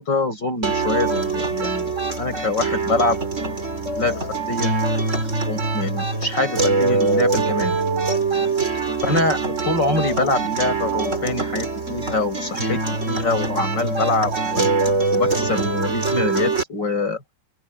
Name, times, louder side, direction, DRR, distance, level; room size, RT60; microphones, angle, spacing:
voice 1, 0.0-3.2 4.0-4.7 5.5-7.8 9.0-14.7 15.1-17.2, left 3 dB, 70° left, 8.7 m, -24 dB
sound 1, 0.6-16.6, right 3 dB, 40° right, 4.1 m, -23 dB
open air
omnidirectional pair, 2.0 m